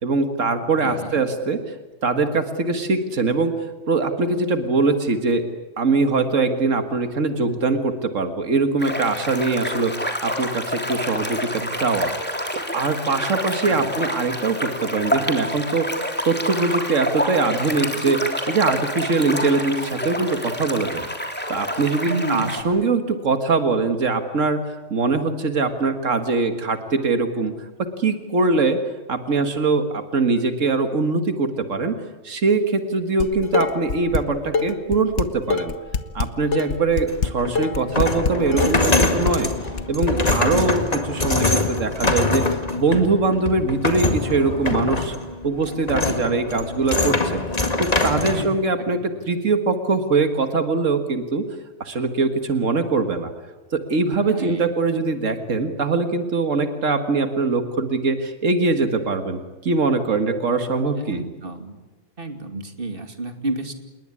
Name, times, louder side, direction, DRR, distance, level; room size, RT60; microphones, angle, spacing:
voice 1, 0.0-1.8 2.0-3.5 3.9-5.5 5.8-12.4 12.7-16.0 16.2-18.2 18.5-21.1 21.5-24.6 24.9-27.7 28.0-28.8 29.1-32.0 32.2-35.7 36.1-39.5 39.9-45.2 45.4-47.4 47.8-51.5 51.8-53.3 53.7-61.2, right 3 dB, 85° right, 7 dB, 2.1 m, -22 dB
voice 2, 0.8-1.2 13.2-13.3 13.7-13.9 22.1-22.6 48.2-48.9 54.2-54.7 60.9-61.8 62.2-63.7, right 2 dB, 45° right, 7 dB, 2.8 m, -30 dB
sound 1, 8.8-22.6, equal, 10° left, 3.4 m, -28 dB
Dishes pots and pans, 33.2-34.2 34.5-40.3, left 5 dB, 65° left, 1.5 m, -24 dB
sound 2, 37.1-48.4, left 2 dB, 30° left, 2.2 m, -24 dB
27.5 x 21.0 x 9.8 m, 1.2 s
omnidirectional pair, 1.3 m